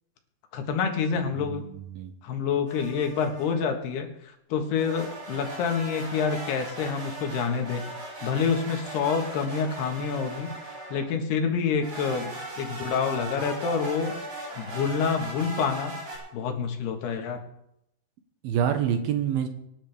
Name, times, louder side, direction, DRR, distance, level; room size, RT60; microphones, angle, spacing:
voice 1, 0.5-1.7 2.2-10.5 10.9-14.2 14.6-16.0 16.3-17.4, left 6 dB, 85° left, 4 dB, 3.6 m, -27 dB
voice 2, 1.4-2.1 18.4-19.5, right 9 dB, 75° right, 7 dB, 2.9 m, -27 dB
sound 1, 2.7-3.7 4.8-11.2 11.8-16.2, right 1 dB, 55° right, 7.4 m, -38 dB
25.0 x 10.0 x 3.5 m, 0.79 s
omnidirectional pair, 4.5 m